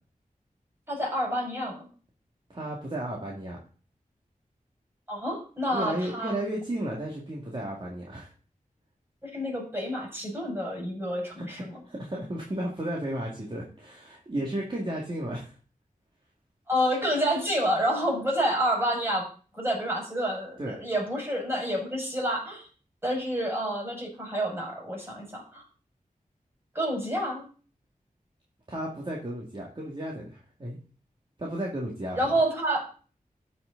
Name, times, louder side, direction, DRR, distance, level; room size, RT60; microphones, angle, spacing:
voice 1, 0.9-1.9 5.1-6.3 9.2-11.8 16.7-19.2 19.5-22.6 23.0-25.6 26.7-27.4 32.2-32.8, equal, 15° right, -2 dB, 6.2 m, -28 dB
voice 2, 2.5-3.6 5.7-8.3 11.4-15.5 20.6-20.8 28.7-30.8 31.4-32.3, right 1 dB, 35° right, -3 dB, 2.3 m, -33 dB
13.5 x 6.2 x 4.0 m, 0.39 s
wide cardioid pair, 80°, 15 cm